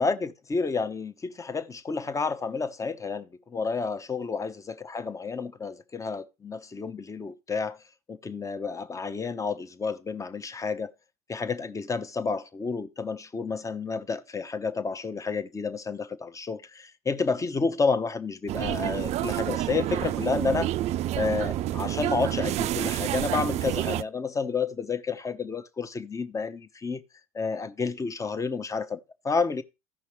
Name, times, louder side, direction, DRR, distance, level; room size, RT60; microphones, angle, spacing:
voice 1, 0.0-7.8 8.1-10.9 11.3-20.7 21.2-27.0 27.3-29.6, left 4 dB, 15° left, 0.8 m, -30 dB
sound 1, 18.5-24.0, right 13 dB, 40° right, 0.4 m, -29 dB
15.0 x 5.5 x 3.2 m
hypercardioid pair, 75°, 18 cm